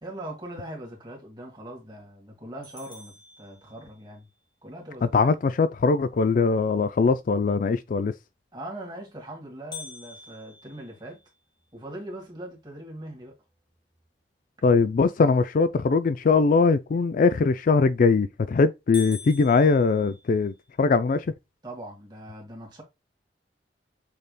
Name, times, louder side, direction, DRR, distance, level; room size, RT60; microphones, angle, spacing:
voice 1, 0.0-4.3 4.6-5.3 8.5-11.2 11.7-13.4 21.6-22.8, right 1 dB, 25° right, 2.1 m, -41 dB
sound 1, 2.6-4.2 9.7-11.9 12.4-12.5 13.0-13.1 13.7-14.1 17.7-18.1 18.5-18.6 18.9-20.7, left 5 dB, 25° left, 1.5 m, -44 dB
voice 2, 5.1-8.1 14.6-21.2, left 4 dB, 45° left, 0.3 m, -21 dB
6.5 x 3.5 x 2.2 m
head